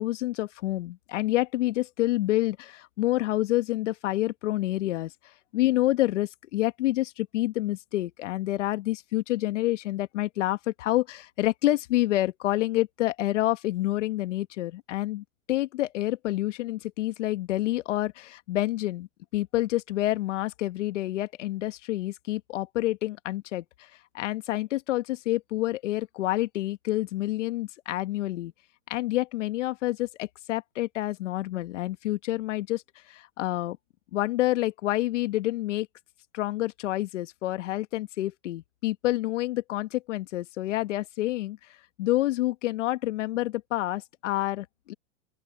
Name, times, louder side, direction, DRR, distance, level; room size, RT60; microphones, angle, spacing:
voice 1, 0.0-28.5 28.9-33.8 34.1-35.9 36.3-44.9, left 16 dB, 70° left, 1.6 m, -28 dB
open air
hypercardioid pair, 130°, 38 cm